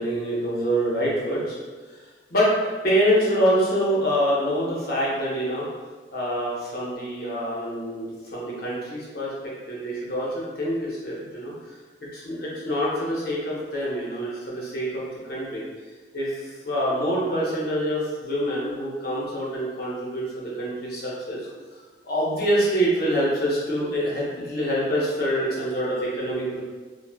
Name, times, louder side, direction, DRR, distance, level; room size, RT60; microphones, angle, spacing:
voice 1, 0.0-1.6 2.3-2.5 2.8-5.7 6.1-11.5 12.0-15.6 16.1-16.3 16.6-21.4 22.0-26.6, equal, 60° left, -6 dB, 0.9 m, -25 dB
2.5 x 2.3 x 3.5 m, 1.4 s
head